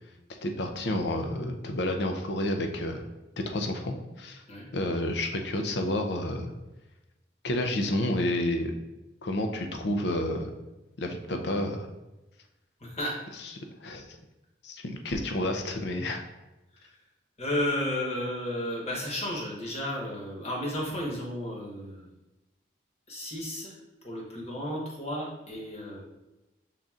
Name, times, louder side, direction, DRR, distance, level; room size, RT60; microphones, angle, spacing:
voice 1, 0.4-3.1 3.5-4.4 4.7-6.5 7.4-8.7 9.2-10.5 11.0-11.9 13.4-13.5 13.8-14.1 14.6-16.2, left 1 dB, 65° left, 5 dB, 0.5 m, -30 dB
voice 2, 12.8-13.2 17.4-22.1 23.1-23.7 24.0-26.0, left 1 dB, 35° left, -3 dB, 1.1 m, -33 dB
5.6 x 3.8 x 2.4 m, 1.0 s
head